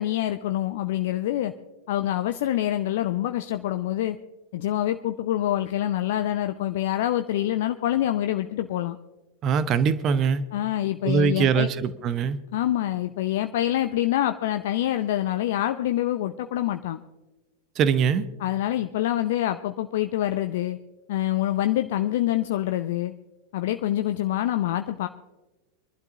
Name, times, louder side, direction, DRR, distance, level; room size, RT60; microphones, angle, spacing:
voice 1, 0.0-1.5 1.9-4.2 4.5-9.0 10.5-11.7 12.5-17.0 18.4-20.8 21.1-23.1 23.5-25.1, left 13 dB, 55° left, 8 dB, 0.5 m, -26 dB
voice 2, 9.4-10.4 11.0-12.4 17.8-18.3, right 7 dB, 30° right, 13 dB, 0.8 m, -22 dB
25.5 x 12.0 x 2.8 m, 1.1 s
figure-of-eight pair, 90°, 0 cm